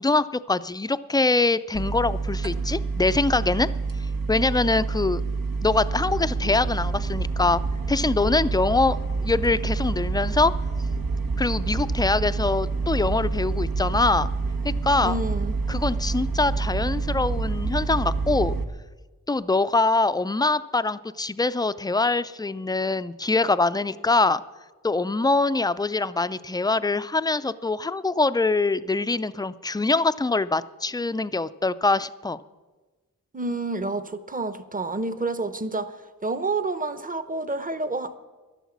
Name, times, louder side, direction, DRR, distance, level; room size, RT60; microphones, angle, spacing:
voice 1, 0.0-3.7 4.3-5.2 5.6-7.6 7.9-10.5 11.4-14.3 14.6-15.1 15.7-18.6 19.3-24.4 24.8-32.4, left 3 dB, 10° left, 0.3 m, -23 dB
sound 1, 1.7-18.6, right 4 dB, 90° right, 1.2 m, -27 dB
voice 2, 15.0-15.5 33.3-38.2, right 3 dB, 25° right, 0.8 m, -29 dB
12.0 x 11.5 x 7.2 m
wide cardioid pair, 95°, 34 cm